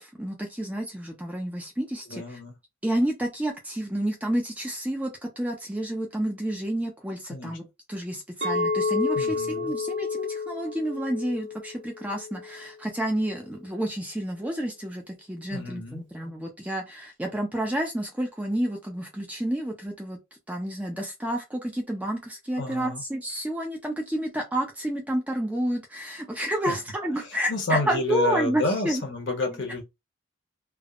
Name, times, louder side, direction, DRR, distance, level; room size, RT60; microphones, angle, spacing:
voice 1, 0.0-2.4 2.8-20.2 20.5-29.0, right 1 dB, 5° right, 0.4 m, -30 dB
voice 2, 2.1-2.5 7.3-7.6 9.1-9.7 15.5-16.0 22.6-23.0 26.7-26.8 27.3-29.8, left 2 dB, 60° left, 0.9 m, -30 dB
Chink clink, 8.4-12.7, left 3 dB, 60° right, 1.0 m, -30 dB
3.3 x 2.0 x 2.4 m
head